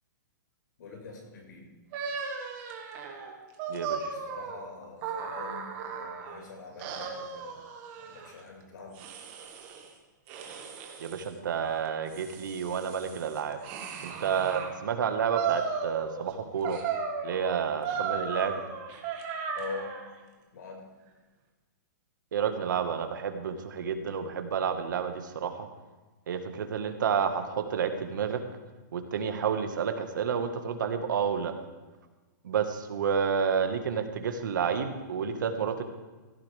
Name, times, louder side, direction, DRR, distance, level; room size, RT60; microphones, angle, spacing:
voice 1, 0.8-1.7 4.1-7.6 8.0-9.0 19.5-20.0 20.5-20.8, left 4 dB, 70° left, 0 dB, 5.3 m, -44 dB
sound 1, 1.9-6.4 6.8-8.3 8.9-9.9 10.3-11.3 11.9-14.7 15.3-16.3 16.6-20.1, right 6 dB, 30° right, 1.8 m, -36 dB
voice 2, 3.7-4.1 11.0-13.6 14.0-16.8 17.2-18.6 22.3-25.7 26.3-28.4 28.9-31.5 32.4-35.8, right 7 dB, 75° right, 7 dB, 1.6 m, -30 dB
16.5 x 13.5 x 3.5 m, 1.2 s
hypercardioid pair, 165°, 10 cm